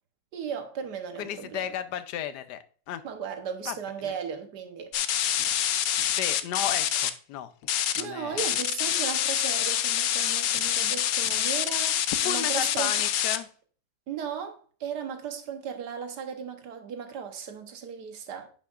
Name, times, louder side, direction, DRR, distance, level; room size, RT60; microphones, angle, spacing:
voice 1, 0.3-1.8 3.0-4.9 8.0-13.0 14.1-18.5, right 7 dB, 90° right, 1.6 m, -36 dB
voice 2, 1.2-3.0 3.7-3.8 4.0-4.1 6.1-7.5 7.9-8.5 12.1-13.5, left 10 dB, 90° left, 1.3 m, -34 dB
sound 1, 4.9-7.1 7.6-8.0 8.3-13.4, left 11 dB, 70° left, 1.0 m, -26 dB
9.9 x 5.6 x 2.4 m
omnidirectional pair, 1.7 m